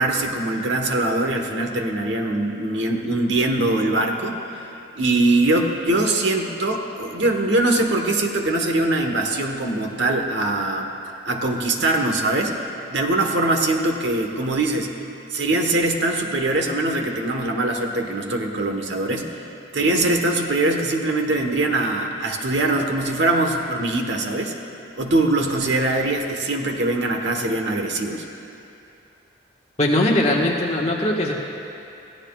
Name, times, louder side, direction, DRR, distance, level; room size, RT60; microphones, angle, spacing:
voice 1, 0.0-4.7 4.9-10.9 11.2-14.9 15.3-19.4 19.7-24.6 25.0-28.2, right 2 dB, 80° right, 3 dB, 1.3 m, -22 dB
voice 2, 29.8-31.3, left 1 dB, 35° left, -2 dB, 1.4 m, -20 dB
22.5 x 16.0 x 2.4 m, 2.8 s
head